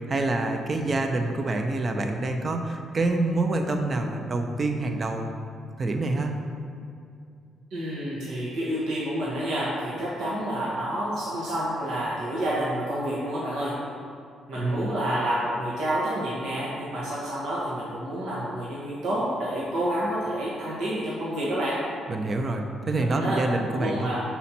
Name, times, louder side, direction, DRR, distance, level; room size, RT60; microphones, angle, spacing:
voice 1, 0.0-5.3 5.8-6.4 14.6-14.9 22.1-24.1, right 2 dB, 40° right, 4 dB, 0.6 m, -26 dB
voice 2, 7.7-13.8 14.5-21.8 23.0-23.4 23.8-24.2, right 1 dB, 80° right, -7 dB, 1.1 m, -29 dB
5.7 x 4.2 x 4.3 m, 2.4 s
cardioid pair, 90°, 0 cm